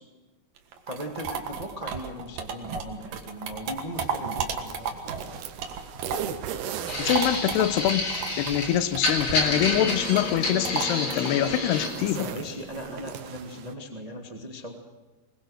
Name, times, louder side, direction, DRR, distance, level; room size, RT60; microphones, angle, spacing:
sound 1, 0.6-6.4 6.7-13.0, right 6 dB, 60° right, 3.0 m, -34 dB
voice 1, 0.9-5.4 12.0-14.7, equal, 45° right, 2 dB, 0.4 m, -38 dB
sound 2, 3.9-13.7, right 9 dB, 80° right, 3.1 m, -39 dB
sound 3, 6.9-11.9, left 2 dB, 35° left, 4.1 m, -29 dB
voice 2, 7.0-8.1 8.4-12.3, left 11 dB, 80° left, 12 dB, 2.9 m, -25 dB
22.0 x 21.5 x 6.4 m, 1.2 s
omnidirectional pair, 4.7 m